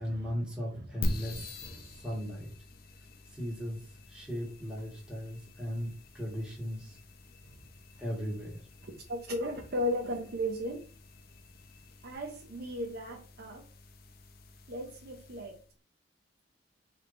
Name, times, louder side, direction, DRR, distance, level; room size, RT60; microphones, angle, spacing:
voice 1, 0.0-1.6 2.0-2.5 3.3-3.8 4.1-7.0 8.0-8.6, equal, 5° right, 1.6 m, -37 dB
voice 2, 0.7-1.2 1.6-2.0 7.4-7.6 9.1-10.8 12.0-13.6 14.7-15.6, equal, 55° right, 0.7 m, -36 dB
sound 1, 1.0-15.7, left 1 dB, 55° left, 0.6 m, -44 dB
4.8 x 3.3 x 2.6 m
head